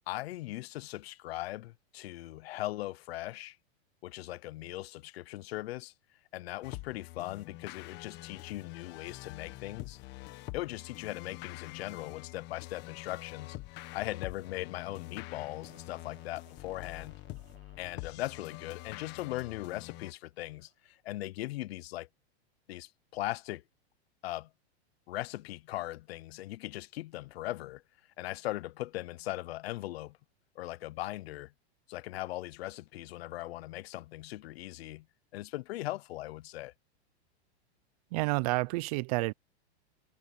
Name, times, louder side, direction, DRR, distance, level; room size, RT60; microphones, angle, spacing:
voice 1, 0.1-3.6 4.0-5.9 6.3-10.0 10.5-13.6 13.9-17.2 17.8-22.1 22.7-23.6 24.2-24.5 25.1-27.8 28.2-30.2 30.6-31.5 31.9-35.1 35.3-36.7, left 16 dB, 65° left, 0.6 m, -39 dB
sound 1, 6.6-20.1, left 19 dB, 30° left, 1.6 m, -46 dB
sound 2, 15.1-21.0, right 16 dB, 65° right, 4.4 m, -67 dB
voice 2, 38.1-39.3, right 24 dB, 35° right, 0.5 m, -29 dB
supercardioid pair, 155°, 34 cm